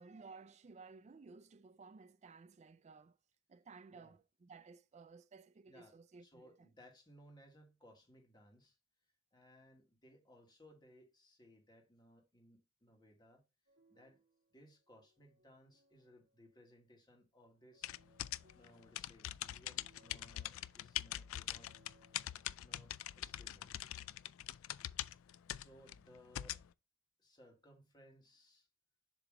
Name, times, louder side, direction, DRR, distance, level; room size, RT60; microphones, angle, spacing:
voice 1, 0.0-3.2 3.5-6.7, right 4 dB, 35° right, 0.4 m, -57 dB
voice 2, 5.7-8.8 9.3-13.4 13.9-14.2 14.5-18.0 18.5-21.8 22.6-23.7 25.5-26.7 27.2-28.7, equal, 20° left, 1.5 m, -63 dB
sound 1, 13.7-16.8 17.5-23.2, right 1 dB, 65° right, 2.2 m, -73 dB
sound 2, 17.8-26.7, left 13 dB, 75° left, 0.3 m, -43 dB
7.2 x 3.0 x 4.8 m
head